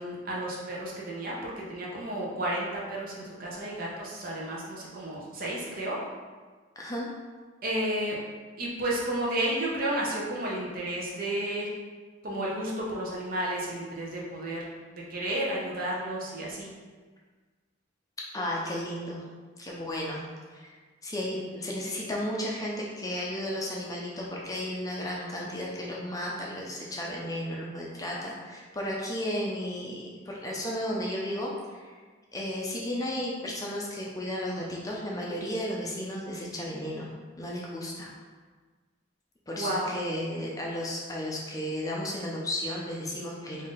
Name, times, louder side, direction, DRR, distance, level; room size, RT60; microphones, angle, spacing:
voice 1, 0.0-6.0 7.6-8.2 8.6-11.7 12.2-14.6 15.1-16.7 39.5-40.0, right 1 dB, 50° right, -4 dB, 0.8 m, -32 dB
voice 2, 6.8-7.1 18.3-19.2 19.6-20.2 20.5-20.7 21.0-31.9 32.3-37.1 37.4-38.1 39.5-43.7, left 1 dB, 20° left, -3 dB, 0.5 m, -34 dB
3.7 x 2.7 x 3.7 m, 1.4 s
head